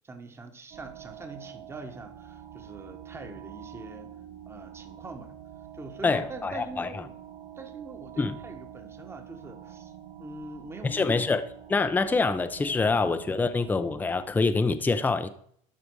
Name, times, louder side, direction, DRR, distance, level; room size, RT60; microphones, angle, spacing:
voice 1, 0.0-4.1 4.5-5.3 5.7-7.1 7.6-9.9 10.2-11.4, right 3 dB, 15° right, 1.3 m, -43 dB
sound 1, 0.7-14.3, right 10 dB, 65° right, 3.1 m, -46 dB
voice 2, 6.0-6.9 8.2-8.4 10.8-11.4 11.7-15.3, left 4 dB, 10° left, 0.6 m, -25 dB
12.0 x 5.0 x 4.7 m
supercardioid pair, 110°, 16 cm